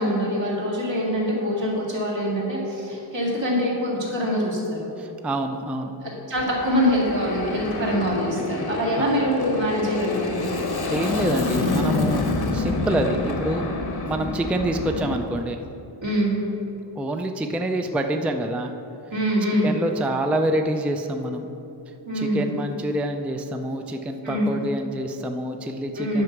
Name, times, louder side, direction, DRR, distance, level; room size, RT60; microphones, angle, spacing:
voice 1, 0.0-4.9 6.0-10.5 16.0-16.4 19.1-19.7 22.1-22.5 24.2-24.5 26.0-26.2, equal, 75° right, -4 dB, 2.4 m, -24 dB
voice 2, 5.0-5.9 9.0-9.2 10.9-12.2 12.5-13.7 14.0-15.6 17.0-18.7 19.6-21.5 22.1-26.2, right 1 dB, 5° right, 5 dB, 0.3 m, -26 dB
Aircraft, 6.4-15.2, left 3 dB, 55° left, 1.0 m, -28 dB
9.4 x 6.0 x 5.9 m, 2.9 s
wide cardioid pair, 140°, 45 cm